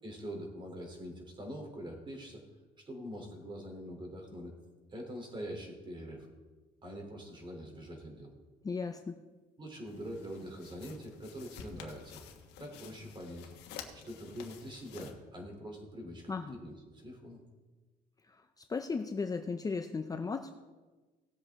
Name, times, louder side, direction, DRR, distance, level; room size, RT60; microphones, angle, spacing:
voice 1, 0.0-2.4 2.8-4.5 4.9-6.3 6.8-8.3 9.6-12.2 12.6-13.5 13.9-17.4, equal, 30° right, 1 dB, 3.2 m, -44 dB
voice 2, 8.6-9.2 16.3-16.5 18.3-18.4 18.7-20.5, left 4 dB, 20° left, 6 dB, 0.6 m, -35 dB
sound 1, 9.9-15.1, left 7 dB, 90° left, 1.4 m, -51 dB
18.5 x 7.9 x 3.6 m, 1.3 s
cardioid pair, 110°, 17 cm